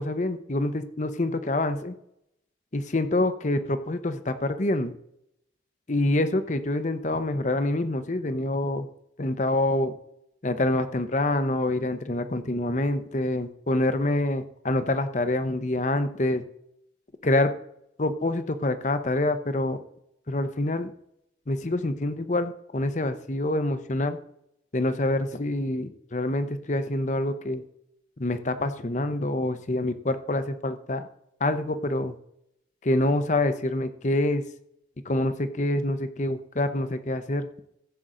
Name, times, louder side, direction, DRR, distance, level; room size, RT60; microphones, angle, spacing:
voice 1, 0.0-1.9 2.7-4.9 5.9-8.9 9.2-9.9 10.4-16.4 17.2-17.5 18.0-19.8 20.3-20.9 21.5-24.2 24.7-27.6 28.2-31.1 31.4-32.1 32.8-34.4 35.1-37.5, left 1 dB, 40° left, 10 dB, 0.7 m, -26 dB
15.0 x 7.7 x 3.8 m, 0.78 s
head